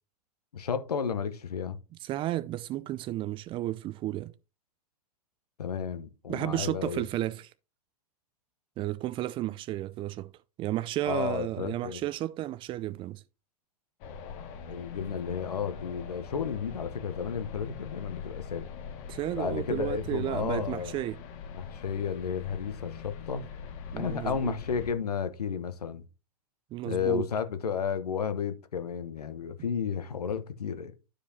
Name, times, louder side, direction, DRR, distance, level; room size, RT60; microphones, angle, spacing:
voice 1, 0.5-1.8 5.6-7.1 11.1-12.0 14.7-18.7 19.3-21.0 21.5-23.5 24.0-26.0 26.9-30.9, left 7 dB, 80° left, 1.0 m, -32 dB
voice 2, 2.0-4.3 6.3-7.5 8.8-10.3 10.6-13.2 19.1-21.2 23.9-24.5 26.7-27.2, right 14 dB, 25° right, 0.5 m, -32 dB
sound 1, 14.0-24.9, left 6 dB, 45° left, 1.5 m, -42 dB
11.5 x 5.0 x 2.8 m
hypercardioid pair, 110°, 20 cm